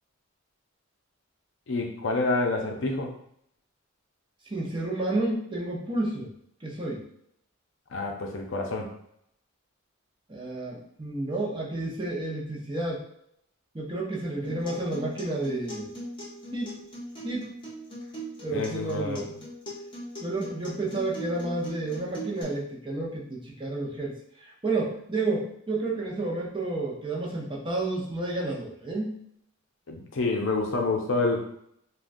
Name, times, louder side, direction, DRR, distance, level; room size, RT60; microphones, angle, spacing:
voice 1, 1.7-3.1 7.9-8.9 18.5-19.2 29.9-31.5, left 3 dB, 65° left, 1 dB, 0.5 m, -28 dB
voice 2, 4.5-6.3 6.6-7.1 10.3-13.0 13.7-15.9 16.5-16.8 17.2-17.5 18.4-19.4 20.2-24.1 24.4-29.2, right 2 dB, 25° right, -3 dB, 0.6 m, -31 dB
Acoustic guitar, 14.4-22.4, right 1 dB, 25° left, 0.8 m, -40 dB
3.5 x 2.2 x 2.6 m, 0.71 s
head